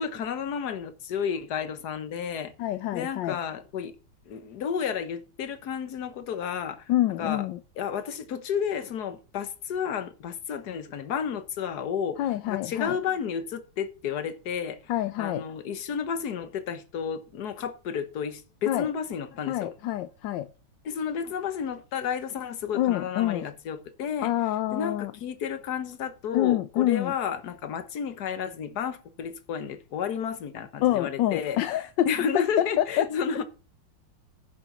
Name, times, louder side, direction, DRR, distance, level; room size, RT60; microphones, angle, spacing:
voice 1, 0.0-2.5 2.9-3.9 4.3-6.9 7.2-7.5 7.8-14.8 15.2-19.7 20.8-24.3 24.7-33.5, left 7 dB, 55° left, 1.6 m, -32 dB
voice 2, 2.6-3.4 6.9-7.6 12.2-13.0 14.9-15.4 18.7-18.9 19.5-20.5 22.7-23.5 24.2-25.1 26.3-27.1 30.8-32.1 32.3-33.0, left 13 dB, 70° left, 1.2 m, -26 dB
10.5 x 6.9 x 5.9 m
omnidirectional pair, 2.2 m